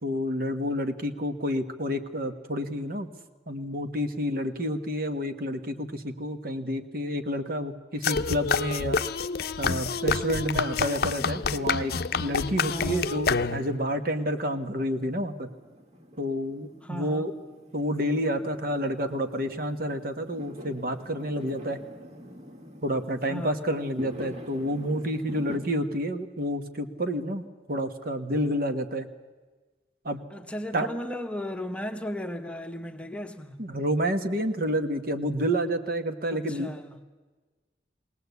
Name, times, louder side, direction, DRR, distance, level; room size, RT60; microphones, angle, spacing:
voice 1, 0.0-3.1 3.5-9.0 9.6-11.9 12.2-15.5 16.2-17.3 17.7-21.8 22.8-29.1 30.0-30.2 30.7-30.9 33.6-36.7, equal, 55° right, 1.4 m, -29 dB
sound 1, 8.0-13.8, left 5 dB, 60° left, 0.6 m, -28 dB
voice 2, 12.7-13.2 16.8-17.3 23.3-23.6 30.3-33.6 36.3-37.0, left 1 dB, 5° left, 1.1 m, -36 dB
Fireworks, 13.7-25.6, equal, 40° right, 2.2 m, -46 dB
21.0 x 18.0 x 8.3 m
head